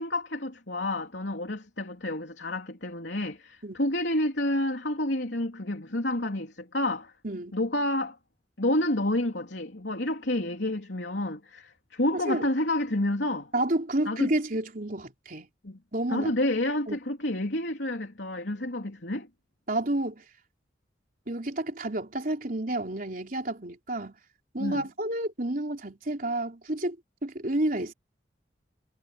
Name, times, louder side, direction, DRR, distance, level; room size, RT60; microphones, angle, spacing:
voice 1, 0.0-7.1 7.5-8.2 8.6-13.5 14.1-14.3 15.6-15.8 16.1-19.3 24.6-24.9, left 1 dB, 85° left, 3.2 m, -29 dB
voice 2, 7.2-7.6 12.1-12.5 13.5-15.5 15.9-16.3 16.9-17.0 19.7-20.2 21.3-24.2 24.5-27.0 27.2-27.9, right 1 dB, 50° right, 3.8 m, -30 dB
head